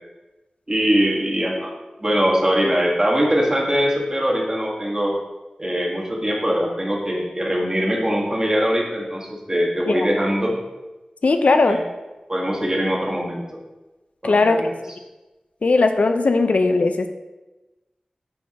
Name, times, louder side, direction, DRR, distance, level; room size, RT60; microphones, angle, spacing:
voice 1, 0.7-1.7 2.0-5.2 5.6-10.5 11.7-11.8 12.3-13.4 14.2-14.7, equal, 30° right, -2 dB, 1.4 m, -22 dB
voice 2, 11.2-11.8 14.2-14.6 15.6-17.1, left 3 dB, 75° left, 7 dB, 0.4 m, -18 dB
9.4 x 3.5 x 2.8 m, 1.1 s
wide cardioid pair, 60°, 2 cm